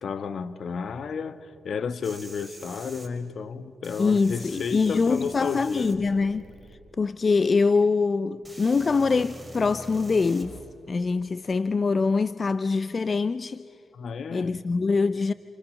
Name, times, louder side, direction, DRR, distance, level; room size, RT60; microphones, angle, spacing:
voice 1, 0.0-5.9 13.9-14.6, left 6 dB, 65° left, 1.2 m, -32 dB
sound 1, 2.0-3.1 3.8-6.7 7.8-7.9 8.4-10.6 12.3-12.4, right 1 dB, ahead, 4.8 m, -45 dB
voice 2, 4.0-6.5 7.0-10.6 10.9-13.7 14.3-15.3, left 4 dB, 45° left, 0.6 m, -24 dB
29.5 x 28.0 x 6.5 m
cardioid pair, 60°, 0 cm